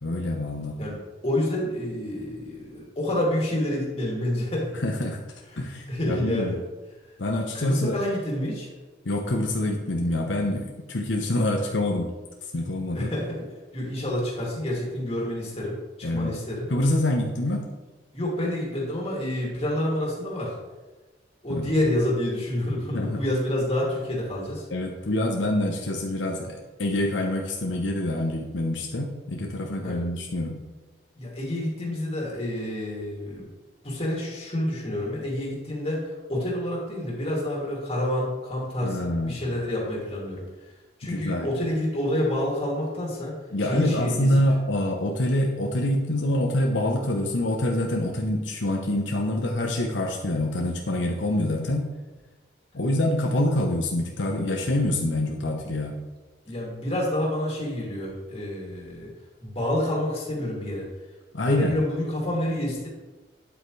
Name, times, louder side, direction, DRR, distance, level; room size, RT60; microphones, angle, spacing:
voice 1, 0.0-0.7 4.7-5.2 5.6-6.6 7.2-8.0 9.0-12.1 12.5-13.1 16.0-16.4 16.7-17.7 21.5-21.8 22.9-23.2 24.7-30.6 38.8-39.4 41.0-41.5 43.5-51.8 52.7-56.0 61.3-61.7, left 1 dB, 85° left, 1 dB, 1.0 m, -26 dB
voice 2, 0.8-4.7 5.9-6.6 7.5-8.7 12.9-13.4 13.7-16.7 18.1-20.5 21.4-24.6 29.8-30.1 31.2-33.4 33.8-40.4 41.0-44.4 56.5-59.1 59.4-60.9 61.5-62.9, left 1 dB, 30° left, -4 dB, 2.8 m, -28 dB
9.3 x 7.9 x 3.3 m, 1.2 s
head